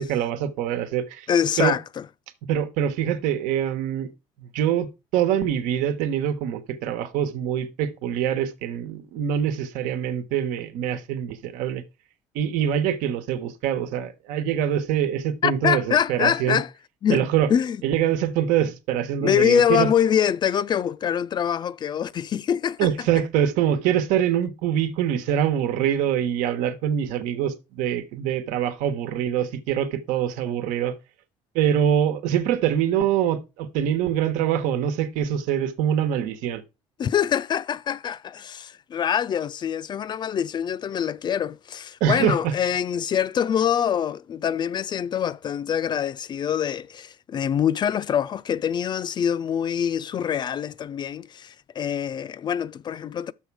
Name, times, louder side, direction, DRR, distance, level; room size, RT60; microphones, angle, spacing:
voice 1, 0.0-1.3 1.6-1.8 2.5-4.1 4.4-11.8 12.3-16.6 17.1-17.5 17.8-19.9 22.8-31.0 31.5-36.6 42.0-42.5, right 9 dB, 90° right, 1.3 m, -24 dB
voice 2, 1.3-2.0 15.4-16.7 17.0-17.2 17.5-17.8 19.2-22.9 37.0-53.3, left 9 dB, 35° left, 0.4 m, -24 dB
7.2 x 6.4 x 4.8 m
cardioid pair, 130°, 13 cm